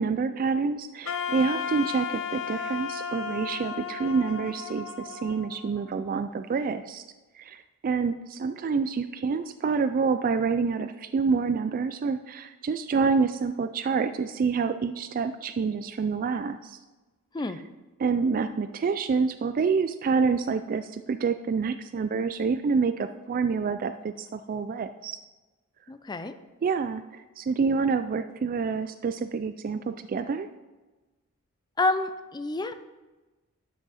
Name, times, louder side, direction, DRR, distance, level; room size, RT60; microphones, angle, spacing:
voice 1, 0.0-7.0 7.4-16.8 18.0-25.2 26.6-30.5, right 5 dB, 40° right, 10 dB, 0.3 m, -27 dB
Wind instrument woodwind instrument, 1.0-6.1, left 7 dB, 65° left, 0.7 m, -34 dB
voice 2, 25.9-26.4 31.8-32.7, left 2 dB, 20° left, 10 dB, 0.5 m, -28 dB
12.5 x 6.2 x 4.2 m, 1.2 s
head